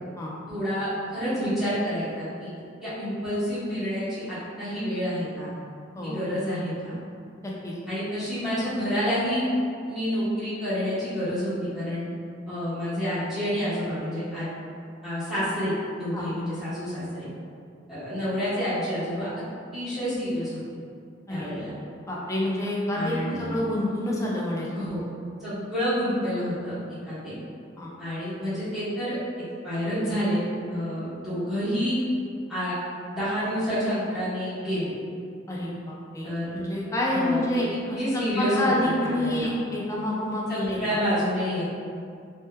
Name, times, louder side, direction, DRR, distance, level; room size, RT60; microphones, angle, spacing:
voice 1, 0.5-2.5 2.8-5.5 6.0-7.0 7.9-9.4 9.8-12.0 12.5-14.6 15.0-17.3 17.9-19.3 19.7-20.5 21.3-21.7 22.9-23.5 24.7-25.0 25.4-26.7 27.0-27.3 28.0-29.2 29.6-30.4 30.7-32.0 32.5-32.7 33.1-34.9 36.2-36.6 37.1-39.5 40.5-41.7, equal, ahead, -15 dB, 1.1 m, -28 dB
voice 2, 7.4-7.7 16.1-16.2 21.3-21.6 22.1-25.0 27.8-27.9 35.5-41.0, left 1 dB, 15° left, -5 dB, 0.4 m, -28 dB
3.2 x 3.0 x 2.2 m, 2.3 s
head